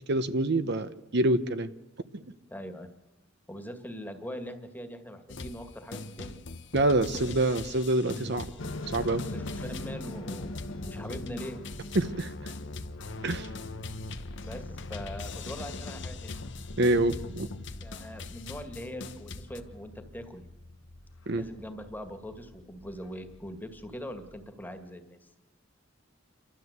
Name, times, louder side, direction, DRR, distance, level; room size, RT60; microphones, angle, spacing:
voice 1, 0.1-1.7 2.1-2.2 6.7-8.5 8.9-9.3 11.9-12.5 13.2-13.5 16.8-17.5 21.3-21.4, right 2 dB, 60° right, 11 dB, 1.0 m, -26 dB
voice 2, 2.5-2.9 3.5-6.4 9.1-11.6 14.4-16.4 17.8-20.4 21.3-25.3, equal, 10° left, 6 dB, 1.9 m, -42 dB
sound 1, 5.3-5.6 5.9-19.6, left 3 dB, 65° left, 1.1 m, -41 dB
sound 2, 8.6-24.5, left 2 dB, 90° left, 1.3 m, -44 dB
29.5 x 12.5 x 8.1 m, 1.1 s
head